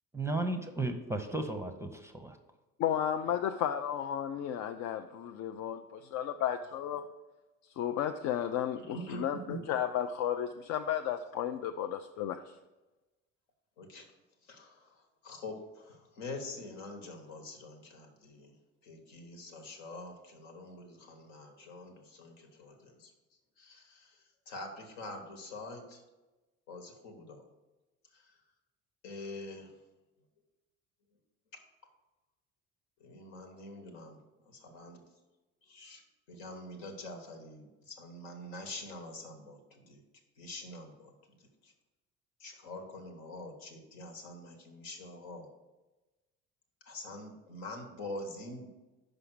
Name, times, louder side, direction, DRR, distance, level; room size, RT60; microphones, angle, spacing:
voice 1, 0.1-2.3, right 2 dB, 5° right, 6 dB, 0.7 m, -34 dB
voice 2, 2.8-7.0 7.8-12.4, left 10 dB, 45° left, 7 dB, 0.4 m, -33 dB
voice 3, 8.8-9.6 13.8-14.1 14.5-14.9 15.2-18.5 18.8-23.1 23.6-24.2 24.5-26.0 26.7-27.4 28.1-28.2 29.0-29.7 33.0-34.2 34.5-35.0 35.7-36.0 36.3-40.0 40.4-41.1 41.6-41.7 42.4-45.5 46.9-48.7, left 2 dB, 70° left, 4 dB, 1.3 m, -45 dB
5.6 x 5.1 x 6.1 m, 1.1 s
figure-of-eight pair, 55°, 39 cm